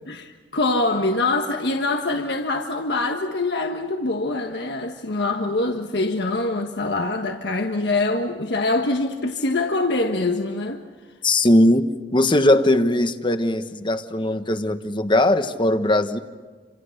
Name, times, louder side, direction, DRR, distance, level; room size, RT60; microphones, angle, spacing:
voice 1, 0.1-10.8, left 2 dB, 65° left, 1.5 m, -24 dB
voice 2, 11.2-11.9 12.1-16.2, left 1 dB, 25° left, 1.3 m, -19 dB
28.5 x 27.0 x 6.7 m
head